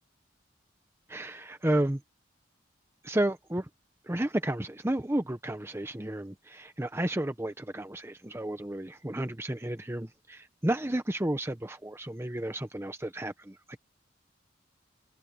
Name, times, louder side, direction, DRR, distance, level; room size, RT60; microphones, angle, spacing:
voice 1, 1.1-2.0 3.0-3.7 4.1-13.8, right 1 dB, 15° right, 0.7 m, -32 dB
head